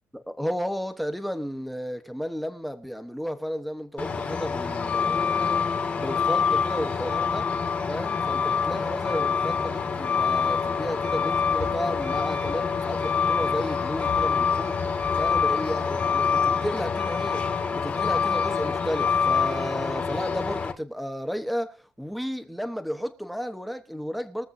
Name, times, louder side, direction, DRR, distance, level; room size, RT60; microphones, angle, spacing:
voice 1, 0.1-5.6 6.0-7.5 7.9-24.5, equal, ahead, 1.0 m, -33 dB
Truck, 4.0-20.7, left 6 dB, 30° left, 1.7 m, -26 dB
22.5 x 7.7 x 2.7 m
cardioid pair, 170°, 5 cm